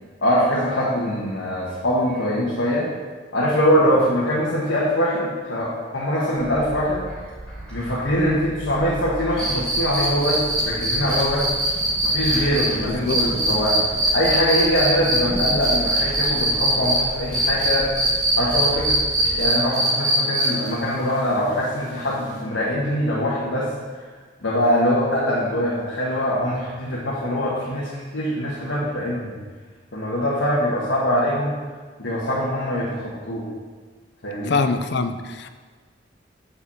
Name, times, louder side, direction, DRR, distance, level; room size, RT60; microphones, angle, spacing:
voice 1, 0.2-2.9 3.3-7.0 7.7-11.5 12.0-13.8 14.1-17.9 18.4-23.7 24.4-29.3 29.9-31.6 32.0-33.5 34.2-34.6, equal, 85° left, -6 dB, 1.6 m, -23 dB
sound 1, 6.4-19.4, right 1 dB, 5° left, 2.6 m, -36 dB
sound 2, 9.4-17.0 17.3-20.7 22.3-22.4, right 1 dB, 20° right, 2.4 m, -22 dB
voice 2, 12.9-13.2 34.4-35.6, left 4 dB, 65° left, 9 dB, 0.5 m, -24 dB
6.5 x 5.2 x 6.9 m, 1.5 s
head